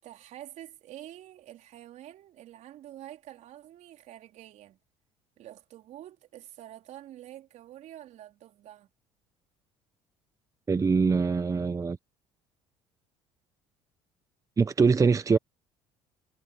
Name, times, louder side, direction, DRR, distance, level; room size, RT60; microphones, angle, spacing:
voice 1, 0.0-4.8 5.4-8.9, right 12 dB, 60° right, 4.0 m, -47 dB
voice 2, 10.7-12.0 14.6-15.4, right 5 dB, 25° right, 0.8 m, -23 dB
supercardioid pair, 80°, 13 cm